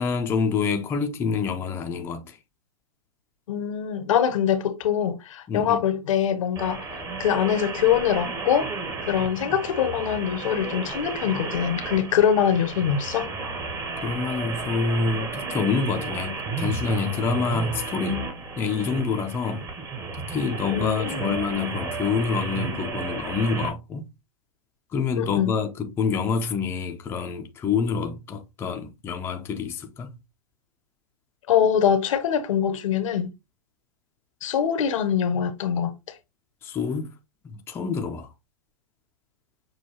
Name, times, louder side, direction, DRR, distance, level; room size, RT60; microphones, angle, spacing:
voice 1, 0.0-2.4 5.5-5.8 14.0-18.3 18.6-19.7 20.1-24.1 24.9-30.2 36.6-37.1 37.4-38.3, left 5 dB, 10° left, 0.4 m, -27 dB
voice 2, 3.5-8.7 9.0-13.3 20.7-21.4 25.2-25.6 31.5-33.3 34.4-35.9, left 8 dB, 60° left, 0.7 m, -23 dB
sound 1, 6.6-23.7, right 3 dB, 20° right, 0.8 m, -33 dB
6.2 x 2.3 x 2.8 m
hypercardioid pair, 125°, 19 cm